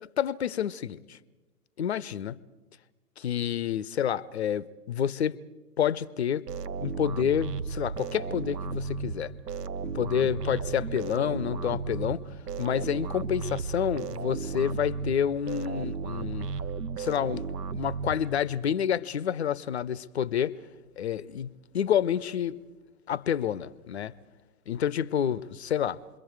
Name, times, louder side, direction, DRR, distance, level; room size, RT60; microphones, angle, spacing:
voice 1, 0.2-1.2 1.8-2.4 3.2-5.4 5.8-6.5 6.8-9.3 9.8-12.2 12.6-16.5 17.0-20.6 21.0-22.6 23.1-24.1 24.7-26.0, left 9 dB, 45° left, 0.6 m, -29 dB
sound 1, 6.5-18.7, right 5 dB, 75° right, 0.8 m, -34 dB
27.5 x 22.5 x 4.7 m
figure-of-eight pair, 120°, 48 cm